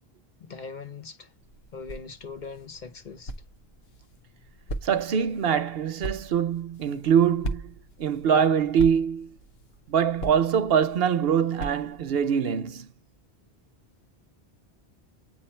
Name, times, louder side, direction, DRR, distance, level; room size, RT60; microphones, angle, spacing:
voice 1, 0.4-1.3 1.7-3.3, left 5 dB, 50° left, 0.9 m, -41 dB
sound 1, 1.3-12.3, right 1 dB, 70° left, 1.1 m, -40 dB
voice 2, 4.8-7.7 8.0-9.3 9.9-12.9, right 7 dB, 70° right, 0.9 m, -23 dB
8.7 x 3.2 x 4.3 m
omnidirectional pair, 1.1 m